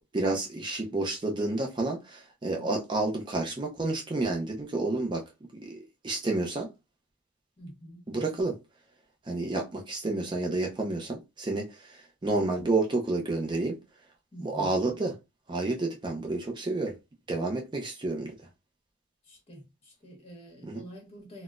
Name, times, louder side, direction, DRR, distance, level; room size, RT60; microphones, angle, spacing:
voice 1, 0.1-5.2 5.5-6.7 8.1-8.6 9.3-11.7 12.2-13.8 14.4-15.1 15.5-16.9 17.3-18.3 20.6-20.8, right 2 dB, 20° right, 0.5 m, -30 dB
voice 2, 7.6-8.4 14.3-14.8 19.2-21.4, equal, 30° left, 1.3 m, -47 dB
4.0 x 2.0 x 2.4 m
head